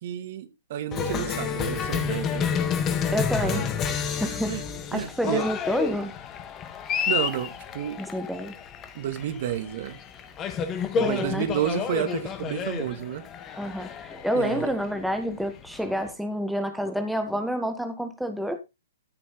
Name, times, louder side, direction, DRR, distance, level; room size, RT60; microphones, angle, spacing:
voice 1, 0.0-2.7 3.4-3.7 4.0-4.6 4.9-5.5 7.1-8.0 8.9-10.0 11.0-13.2 14.3-14.7, right 10 dB, 50° right, 2.3 m, -31 dB
Cheering, 0.9-16.1, left 7 dB, 25° left, 1.6 m, -30 dB
voice 2, 3.1-3.7 4.2-4.6 4.9-6.1 8.0-8.5 11.0-11.5 13.6-18.6, equal, ahead, 1.2 m, -28 dB
14.0 x 6.1 x 3.9 m
hypercardioid pair, 125°, 0 cm